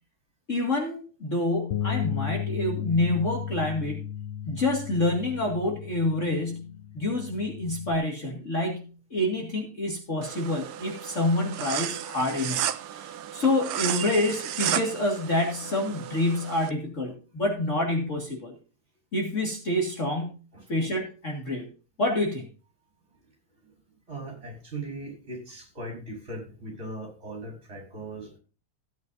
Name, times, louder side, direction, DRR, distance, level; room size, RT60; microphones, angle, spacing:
voice 1, 0.5-4.0 4.5-12.6 12.9-18.6 19.1-20.4 20.7-21.7 22.0-22.5, left 1 dB, 35° left, 0 dB, 2.4 m, -27 dB
Bass guitar, 1.7-8.0, left 9 dB, 75° left, 1.4 m, -34 dB
sound 1, 10.2-16.7, right 11 dB, 85° right, 1.6 m, -33 dB
voice 2, 24.1-28.4, right 2 dB, 30° right, 1 dB, 5.3 m, -39 dB
16.5 x 9.4 x 2.7 m, 0.35 s
omnidirectional pair, 2.3 m